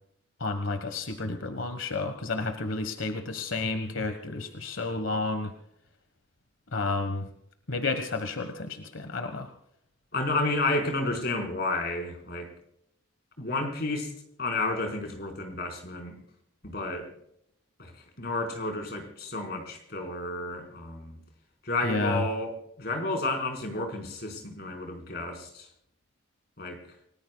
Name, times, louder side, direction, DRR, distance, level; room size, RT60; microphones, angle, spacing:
voice 1, 0.4-5.5 6.7-7.3 7.7-9.5 21.8-22.2, left 3 dB, 85° left, 8 dB, 1.4 m, -31 dB
voice 2, 10.1-12.5 13.4-14.1 14.4-16.2 16.6-17.1 17.8-21.2 21.6-25.7 26.6-26.8, left 2 dB, 55° left, 3 dB, 4.8 m, -31 dB
29.5 x 19.0 x 2.3 m, 0.75 s
head